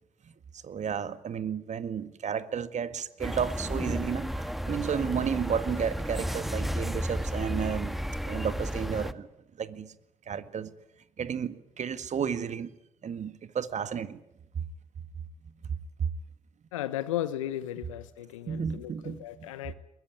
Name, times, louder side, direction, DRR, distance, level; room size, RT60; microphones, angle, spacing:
voice 1, 0.2-8.0 8.2-9.3 9.6-9.9 10.3-10.7 11.2-12.7 13.0-14.2 14.6-14.7 15.6-16.1 18.5-19.7, right 7 dB, 45° right, 1.8 m, -32 dB
sound 1, 3.2-9.1, equal, ahead, 1.6 m, -33 dB
voice 2, 16.7-19.7, left 12 dB, 80° left, 1.0 m, -35 dB
22.5 x 22.0 x 9.4 m
hypercardioid pair, 50°, 16 cm